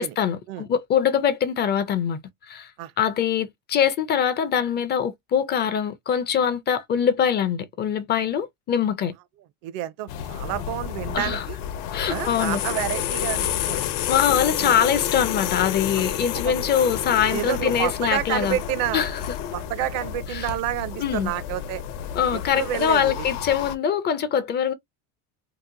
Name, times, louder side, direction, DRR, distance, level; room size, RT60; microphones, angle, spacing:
voice 1, 0.0-2.2 2.5-2.7 3.0-9.1 11.1-11.4 11.9-12.6 14.1-18.6 18.9-19.2 20.3-20.5 21.0-21.3 22.1-24.7, left 8 dB, 30° left, 0.4 m, -23 dB
voice 2, 9.6-11.6 12.1-13.8 14.4-14.8 16.3-16.5 17.3-19.0 19.5-21.8 22.3-23.3, right 13 dB, 65° right, 0.6 m, -29 dB
sound 1, 10.1-23.7, left 10 dB, 85° left, 0.7 m, -30 dB
2.9 x 2.1 x 3.7 m
cardioid pair, 155°, 37 cm